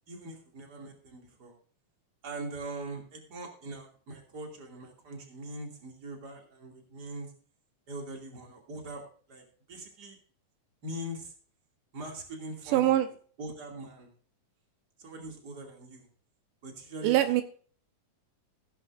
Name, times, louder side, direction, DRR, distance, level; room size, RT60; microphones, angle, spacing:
voice 1, 0.1-1.5 2.2-7.3 7.9-9.0 9.3-9.4 9.7-10.2 10.8-11.3 11.9-13.0 13.4-14.1 15.0-16.1 16.6-17.3, right 1 dB, 30° right, 1 dB, 2.9 m, -42 dB
voice 2, 12.7-13.1 17.0-17.4, right 13 dB, 85° right, 8 dB, 2.5 m, -23 dB
16.5 x 11.0 x 2.6 m, 0.43 s
omnidirectional pair, 3.7 m